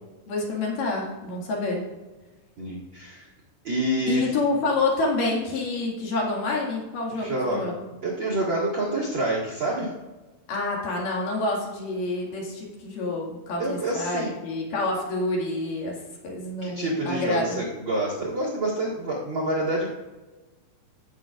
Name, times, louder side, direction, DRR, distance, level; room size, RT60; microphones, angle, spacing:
voice 1, 0.3-1.8 4.1-7.7 10.5-16.0 16.2-17.6, left 2 dB, 55° left, -2 dB, 3.2 m, -28 dB
voice 2, 2.6-3.3 3.6-4.3 7.1-7.6 8.0-9.9 13.6-14.3 16.6-19.9, right 1 dB, 60° right, -5 dB, 1.2 m, -27 dB
18.0 x 7.6 x 2.5 m, 1.2 s
omnidirectional pair, 5.2 m